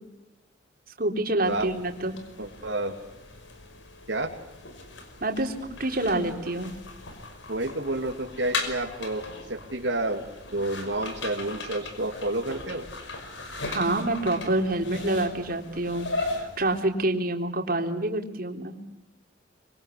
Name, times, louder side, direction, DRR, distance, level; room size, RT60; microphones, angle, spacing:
voice 1, 1.0-2.2 5.2-5.5 5.8-6.7 13.7-16.1 16.3-18.8, right 2 dB, 50° right, 3 dB, 3.7 m, -27 dB
sound 1, 1.4-16.8, left 3 dB, 80° left, 5.5 m, -38 dB
voice 2, 2.4-3.0 4.1-4.3 7.5-10.3 10.5-12.9, right 2 dB, 70° right, 0 dB, 2.6 m, -30 dB
26.0 x 24.0 x 8.4 m, 0.93 s
head